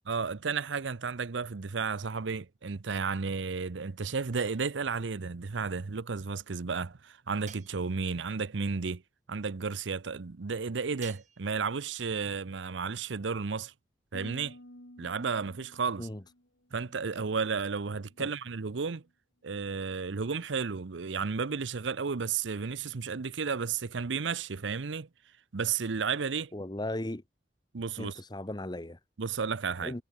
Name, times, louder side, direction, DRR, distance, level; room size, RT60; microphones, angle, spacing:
voice 1, 0.1-9.0 9.3-13.7 14.1-14.6 15.0-16.1 16.7-19.0 19.4-25.1 25.5-26.5 27.7-28.2 29.2-29.9, right 5 dB, 85° right, 0.7 m, -33 dB
sound 1, 4.3-5.0 7.5-8.3 11.0-11.7, right 8 dB, 40° right, 1.9 m, -53 dB
Harp, 14.1-18.2 18.5-19.1 19.6-19.9, left 1 dB, 75° left, 6.4 m, -53 dB
voice 2, 26.5-27.2 28.0-29.0 29.8-30.0, left 1 dB, 25° left, 1.1 m, -36 dB
head